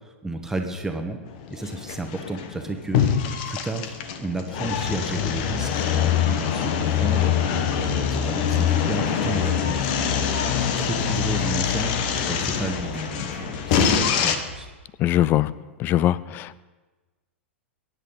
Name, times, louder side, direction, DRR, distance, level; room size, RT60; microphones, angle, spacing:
voice 1, 0.2-1.2 1.5-3.1 3.5-9.8 10.8-11.9 12.3-14.7, right 2 dB, 5° right, 4 dB, 1.3 m, -32 dB
sound 1, 1.3-14.4, left 8 dB, 45° left, 1.2 m, -24 dB
sound 2, 8.4-14.6, left 1 dB, 85° left, 3.5 m, -42 dB
voice 2, 15.0-15.5 15.8-16.6, left 13 dB, 30° left, 20 dB, 0.5 m, -21 dB
22.5 x 10.5 x 4.0 m, 1.2 s
figure-of-eight pair, 95°, 7 cm